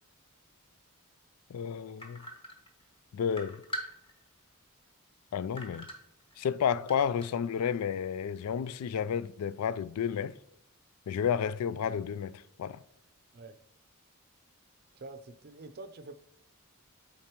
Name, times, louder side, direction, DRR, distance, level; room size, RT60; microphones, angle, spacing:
voice 1, 1.5-2.2 3.1-3.6 5.3-5.9 6.4-10.3 11.1-12.8, left 7 dB, 85° left, 0.3 m, -31 dB
sound 1, 2.0-2.9 3.3-4.4 4.8-4.9 5.6-6.5 6.9-7.5, right 1 dB, 25° left, 1.0 m, -42 dB
voice 2, 14.9-16.1, right 3 dB, 45° right, 0.5 m, -46 dB
8.7 x 3.8 x 3.0 m
head